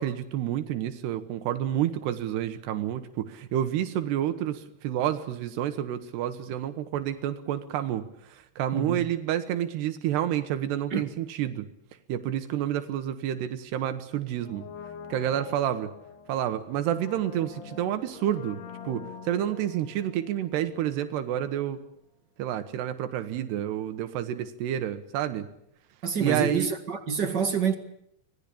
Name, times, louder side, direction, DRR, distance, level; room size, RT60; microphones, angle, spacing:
voice 1, 0.0-8.0 8.6-11.7 12.1-14.7 15.1-15.9 16.3-21.8 22.4-25.5 26.2-26.7, right 11 dB, 85° right, 3.4 m, -29 dB
voice 2, 8.7-9.0 10.9-11.0 26.0-27.7, right 6 dB, 45° right, 1.5 m, -27 dB
Brass instrument, 14.4-21.3 21.5-21.6, left 6 dB, 80° left, 4.2 m, -45 dB
26.0 x 19.5 x 8.5 m
omnidirectional pair, 4.7 m